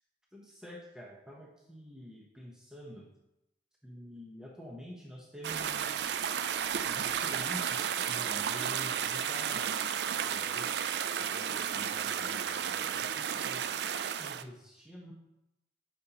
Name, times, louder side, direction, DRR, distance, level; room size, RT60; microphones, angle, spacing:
voice 1, 0.3-3.1 3.8-6.0 6.8-9.7 10.1-10.7 11.2-13.8 14.2-15.1, equal, 5° right, -3 dB, 0.8 m, -48 dB
sound 1, 5.4-14.4, right 8 dB, 70° right, 0.4 m, -33 dB
11.0 x 5.2 x 2.9 m, 0.89 s
head